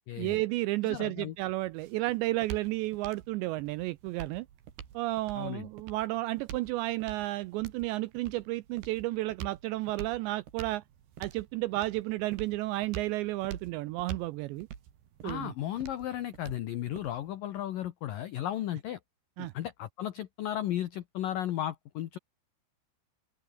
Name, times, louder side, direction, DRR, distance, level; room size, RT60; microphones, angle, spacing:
voice 1, 0.2-4.5 4.9-10.8 11.2-14.7 15.2-15.5 19.4-19.5, right 18 dB, 80° right, 2.6 m, -32 dB
voice 2, 0.8-1.3 5.4-5.7 15.2-19.0 19.4-22.2, left 12 dB, 85° left, 1.9 m, -35 dB
sound 1, 1.3-17.4, right 9 dB, 60° right, 4.2 m, -46 dB
open air
omnidirectional pair, 5.7 m